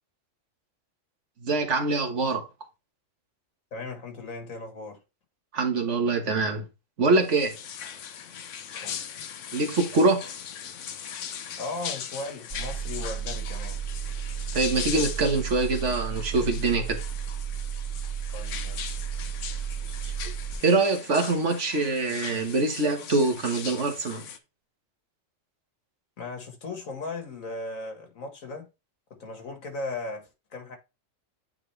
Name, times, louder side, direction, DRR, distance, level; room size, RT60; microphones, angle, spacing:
voice 1, 1.4-2.5 5.5-6.7 7.0-7.5 9.5-10.2 14.5-17.0 20.0-20.1 20.6-24.3, right 3 dB, 65° right, 1.6 m, -24 dB
voice 2, 3.7-5.0 8.8-9.1 11.6-13.8 18.3-19.0 26.2-28.7 29.1-30.8, left 3 dB, 90° left, 2.1 m, -37 dB
sound 1, 7.2-24.4, left 8 dB, 70° left, 1.0 m, -39 dB
sound 2, 12.5-20.6, right 8 dB, 35° right, 0.5 m, -33 dB
9.0 x 3.8 x 3.3 m
omnidirectional pair, 1.4 m